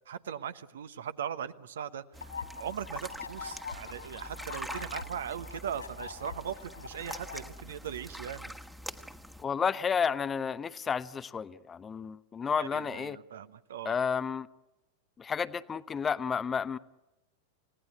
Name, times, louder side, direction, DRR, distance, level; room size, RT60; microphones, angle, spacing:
voice 1, 0.1-8.5 12.6-14.0, right 9 dB, 65° right, 1.1 m, -39 dB
sound 1, 2.1-9.4, equal, ahead, 1.5 m, -44 dB
sound 2, 2.2-7.4, left 5 dB, 75° left, 4.6 m, -44 dB
voice 2, 9.4-13.2 13.8-14.5 15.2-16.8, left 6 dB, 20° left, 0.8 m, -31 dB
29.5 x 17.5 x 8.4 m
figure-of-eight pair, 90°, 0 cm